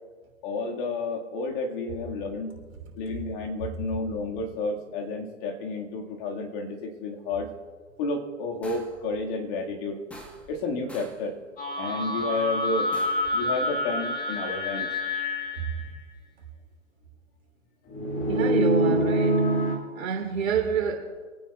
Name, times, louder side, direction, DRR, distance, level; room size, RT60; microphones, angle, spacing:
voice 1, 0.4-2.6 3.0-7.5 8.0-10.0 10.5-11.4 11.8-12.9 13.3-14.9 15.8-15.9 18.9-19.1, left 3 dB, 40° left, 1 dB, 1.8 m, -31 dB
sound 1, 8.6-9.1 10.1-10.6 10.9-11.3 12.9-13.4, right 1 dB, 5° left, 1.1 m, -46 dB
sound 2, 11.6-15.8 17.9-19.8, equal, 20° left, 2.1 m, -26 dB
voice 2, 18.3-19.3 19.9-21.3, right 7 dB, 80° right, 2 dB, 3.2 m, -28 dB
27.0 x 9.5 x 2.3 m, 1.5 s
hypercardioid pair, 130°, 40 cm